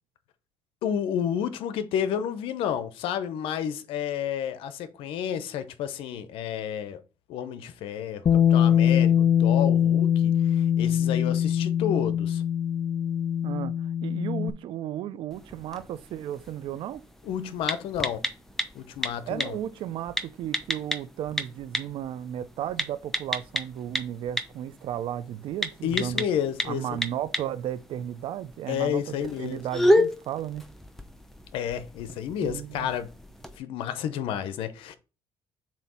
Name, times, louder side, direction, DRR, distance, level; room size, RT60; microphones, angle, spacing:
voice 1, 0.8-7.0 7.3-12.4 17.2-18.2 18.7-19.6 25.8-27.0 28.7-29.6 31.5-33.1 33.6-35.0, left 9 dB, 85° left, 0.8 m, -31 dB
Bass guitar, 8.3-14.5, left 9 dB, 40° left, 0.4 m, -22 dB
voice 2, 13.4-13.8 14.0-17.0 19.3-26.2 26.6-30.7 32.4-32.9, right 11 dB, 70° right, 0.6 m, -34 dB
sound 1, 15.3-33.6, left 1 dB, 5° left, 0.8 m, -32 dB
7.4 x 2.8 x 5.5 m
cardioid pair, 95°, 9 cm